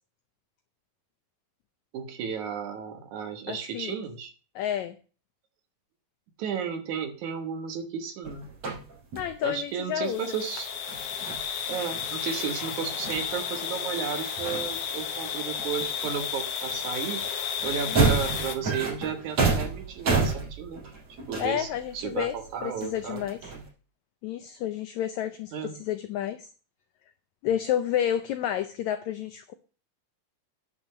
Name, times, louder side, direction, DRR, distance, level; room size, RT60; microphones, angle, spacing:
voice 1, 1.9-4.3 6.4-8.5 9.4-10.7 11.7-20.8 21.3-23.2 25.5-25.8, right 7 dB, 65° right, 6 dB, 2.3 m, -33 dB
voice 2, 3.5-3.9 4.5-5.0 9.2-10.4 17.9-18.2 21.4-22.3 22.6-23.4 24.2-26.5 27.4-29.5, left 10 dB, 85° left, 10 dB, 1.6 m, -30 dB
sound 1, 8.2-9.3 10.8-14.0 14.3-15.2 15.5-16.4 16.7-23.7, right 4 dB, 50° right, 5.2 m, -30 dB
sound 2, 10.0-18.6, left 8 dB, 65° left, 1.6 m, -33 dB
9.6 x 6.0 x 6.5 m, 0.39 s
omnidirectional pair, 4.0 m